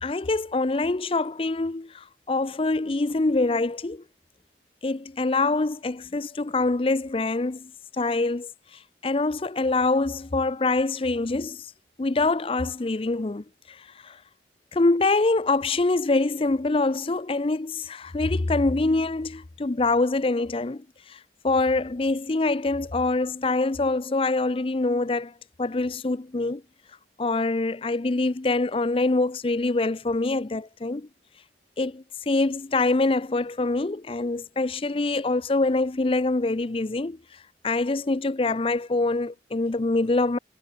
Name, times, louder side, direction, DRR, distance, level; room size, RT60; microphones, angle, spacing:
voice 1, 0.0-4.0 4.8-7.7 8.0-8.5 9.0-11.6 12.0-13.8 14.0-14.2 14.7-21.2 21.4-25.3 25.6-26.6 27.2-31.1 31.8-37.2 37.6-40.4, left 3 dB, 30° left, 0.5 m, -25 dB
head